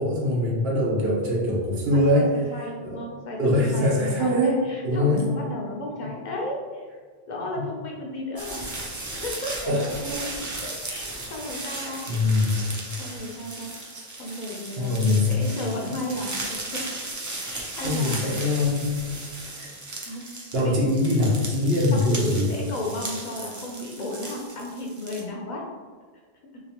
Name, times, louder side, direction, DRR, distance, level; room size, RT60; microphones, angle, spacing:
voice 1, 0.0-2.3 2.8-3.0 3.4-4.6 4.8-5.2 7.6-7.7 9.7-10.3 12.1-12.5 14.8-15.3 17.8-19.0 19.6-19.7 20.5-22.5, left 1 dB, 80° right, -3 dB, 1.1 m, -23 dB
voice 2, 1.9-6.9 7.3-8.7 9.1-9.7 10.6-12.0 13.0-13.7 14.2-16.9 17.5-18.3 20.1-20.2 20.6-20.8 21.9-25.6, left 1 dB, 55° left, -2 dB, 0.6 m, -34 dB
sound 1, 8.4-25.2, right 2 dB, 30° right, 0.3 m, -36 dB
3.2 x 3.0 x 2.8 m, 1.5 s
omnidirectional pair, 1.0 m